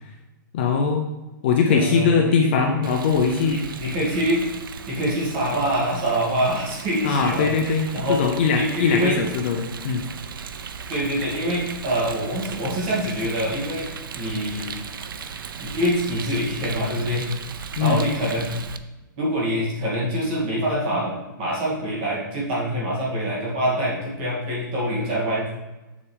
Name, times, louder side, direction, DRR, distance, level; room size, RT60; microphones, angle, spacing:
voice 1, 0.5-1.0 1.4-3.6 7.0-10.1 17.8-18.0, left 5 dB, 30° left, 3 dB, 0.5 m, -21 dB
voice 2, 1.7-2.8 3.5-4.4 4.9-7.5 7.9-8.2 8.6-9.2 10.9-13.9 14.1-14.7 15.6-17.3 17.8-18.5 19.2-25.5, equal, 25° right, -5 dB, 2.2 m, -25 dB
Rain, 2.8-18.8, right 6 dB, 85° right, 0.6 m, -37 dB
7.2 x 6.9 x 3.3 m, 1.1 s
hypercardioid pair, 180°, 11 cm